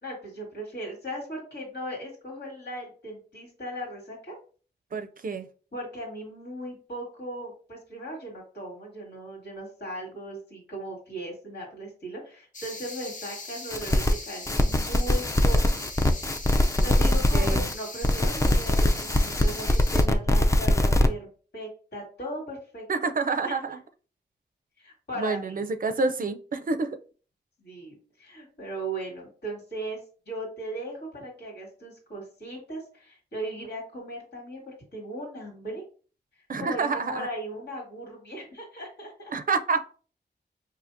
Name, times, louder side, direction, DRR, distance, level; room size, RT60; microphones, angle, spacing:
voice 1, 0.0-4.4 5.7-15.8 16.8-22.8 23.4-23.6 24.8-25.6 27.6-30.0 30.3-35.8 36.6-39.3, right 1 dB, 70° left, -2 dB, 1.9 m, -38 dB
voice 2, 4.9-5.4 17.3-17.7 22.9-23.8 25.2-27.0 36.5-37.3 39.3-39.8, right 4 dB, 50° right, 8 dB, 0.4 m, -28 dB
sound 1, 12.5-20.1, left 3 dB, 45° left, 0.7 m, -40 dB
sound 2, 13.7-14.1 14.5-17.7 18.0-21.1, left 1 dB, 15° left, 0.4 m, -22 dB
4.8 x 2.7 x 2.5 m, 0.39 s
wide cardioid pair, 125°, 18 cm